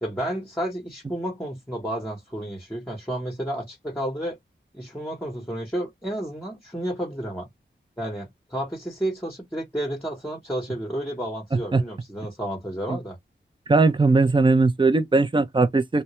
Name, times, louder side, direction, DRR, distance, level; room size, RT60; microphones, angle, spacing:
voice 1, 0.0-4.4 4.7-7.5 8.0-13.2, right 1 dB, 10° left, 0.8 m, -31 dB
voice 2, 11.5-11.8 12.9-13.0 13.7-16.0, right 3 dB, 25° right, 0.4 m, -19 dB
2.2 x 2.1 x 2.8 m
cardioid pair, 40°, 20 cm